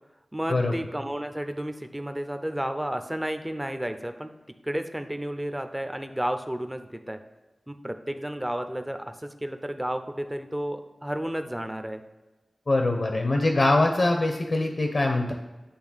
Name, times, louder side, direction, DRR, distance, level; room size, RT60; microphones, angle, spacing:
voice 1, 0.3-4.3 4.6-7.2 7.7-12.0, right 1 dB, 10° right, 7 dB, 0.6 m, -32 dB
voice 2, 12.7-15.3, left 2 dB, 60° left, 3 dB, 0.9 m, -23 dB
8.5 x 3.3 x 6.3 m, 1.1 s
wide cardioid pair, 60°, 0 cm